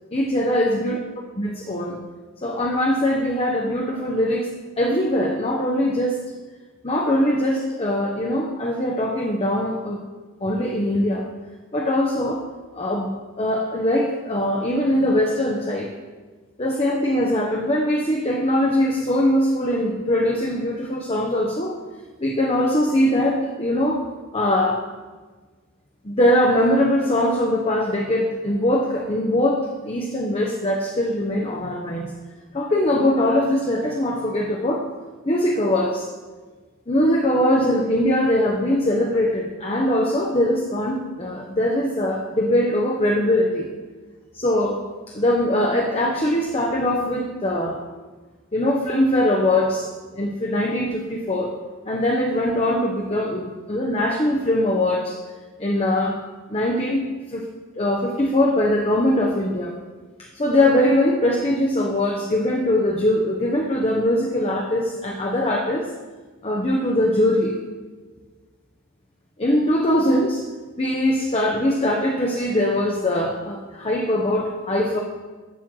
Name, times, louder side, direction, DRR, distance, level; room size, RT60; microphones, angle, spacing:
voice 1, 0.1-1.0 1.4-2.0 2.4-4.5 4.8-6.2 6.8-10.0 10.4-11.3 11.7-12.4 12.7-15.9 16.6-21.8 22.2-24.0 24.3-24.8 26.0-32.2 32.5-34.9 35.3-36.1 36.9-43.7 44.3-47.8 48.5-51.5 51.9-55.2 55.6-56.2 56.5-57.5 57.8-59.8 60.3-65.9 66.4-67.6 69.4-70.4 70.8-75.0, left 1 dB, 30° left, 0 dB, 0.9 m, -21 dB
12.0 x 4.5 x 7.6 m, 1.4 s
head